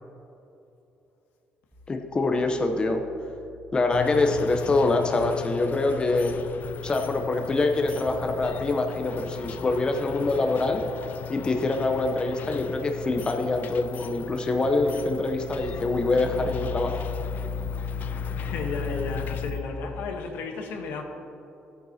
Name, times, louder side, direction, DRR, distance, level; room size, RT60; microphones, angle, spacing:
sound 1, 1.7-19.6, left 5 dB, 10° right, 1.4 m, -39 dB
voice 1, 1.9-3.0 3.7-6.3 6.8-10.8 11.3-17.1, left 2 dB, 25° left, 4 dB, 0.7 m, -25 dB
sound 2, 3.9-19.5, left 8 dB, 55° left, 0.3 m, -38 dB
voice 2, 18.3-21.0, left 3 dB, 85° left, 3 dB, 1.1 m, -33 dB
13.5 x 8.9 x 2.8 m, 2.9 s
cardioid pair, 110°, 4 cm